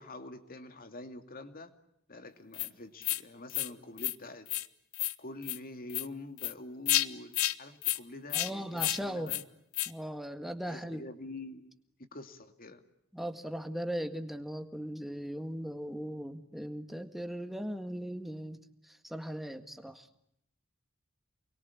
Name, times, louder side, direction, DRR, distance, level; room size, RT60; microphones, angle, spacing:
voice 1, 0.0-1.7 2.1-4.5 5.2-9.4 10.7-12.8, left 2 dB, 45° left, 7 dB, 2.6 m, -46 dB
sound 1, 2.5-2.7 3.0-3.2 3.5-3.7 4.0-4.1 4.5-4.7 4.9-5.1 5.4-5.6 5.9-6.1 6.4-6.5 6.9-7.1 7.3-7.5 7.8-8.0 8.3-8.5 8.8-9.0 9.3-9.4 9.7-9.9, left 15 dB, 85° left, 1.1 m, -30 dB
voice 2, 8.3-9.3 9.9-11.0 13.1-20.1, equal, ahead, 7 dB, 1.8 m, -38 dB
29.0 x 22.5 x 8.5 m, 0.78 s
head